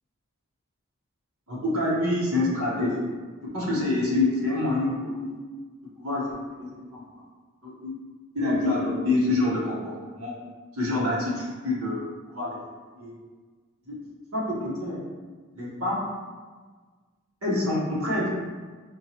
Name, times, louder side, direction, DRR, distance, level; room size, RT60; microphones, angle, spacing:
voice 1, 1.5-3.0 3.5-5.4 6.0-6.3 6.6-7.0 7.6-8.0 8.3-10.3 10.8-12.0 12.3-12.5 12.9-13.1 14.3-15.0 15.5-15.9 17.4-18.3, left 2 dB, 85° right, -6 dB, 1.1 m, -26 dB
4.4 x 2.3 x 2.9 m, 1.4 s
head